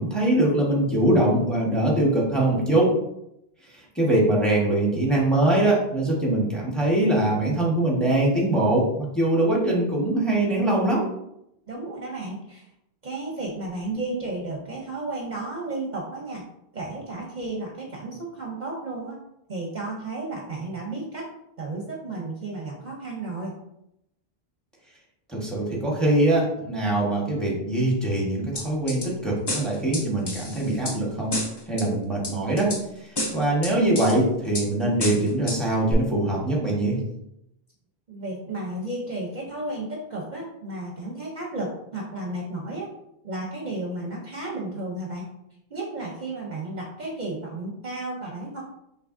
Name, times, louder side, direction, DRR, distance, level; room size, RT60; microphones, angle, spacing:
voice 1, 0.0-2.9 3.9-11.1 25.3-31.3 31.7-32.7 33.3-37.0, right 1 dB, ahead, -3 dB, 1.1 m, -22 dB
voice 2, 11.7-12.7 13.0-16.4 16.7-19.2 19.5-21.3 21.6-23.5 38.1-42.9 43.2-45.3 45.7-48.6, right 2 dB, 50° right, -2 dB, 0.8 m, -33 dB
sound 1, 28.6-29.1 29.5-31.0 31.3-31.9 32.2-32.8 33.2-34.2 34.5-34.7 35.0-35.6 35.9-36.0, left 1 dB, 30° left, 0.6 m, -30 dB
5.8 x 3.0 x 2.5 m, 0.80 s
omnidirectional pair, 1.1 m